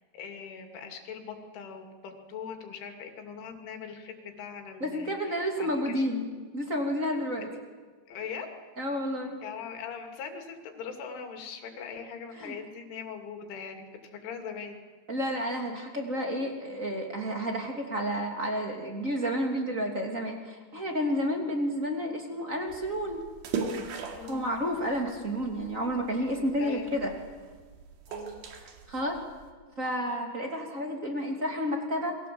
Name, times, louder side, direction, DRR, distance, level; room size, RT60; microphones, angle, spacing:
voice 1, 0.1-6.1 8.1-8.5 9.4-14.8 24.1-24.4 26.6-26.9 28.1-28.4, left 6 dB, 85° left, 4 dB, 5.1 m, -41 dB
voice 2, 4.8-6.2 6.5-7.5 8.8-9.4 12.4-12.5 15.1-23.2 24.2-27.1 28.9-29.2 29.8-32.2, equal, 25° right, 2 dB, 2.2 m, -30 dB
sound 1, 22.7-29.5, right 5 dB, 65° right, 4.3 m, -40 dB
28.5 x 23.0 x 7.8 m, 1.5 s
omnidirectional pair, 5.4 m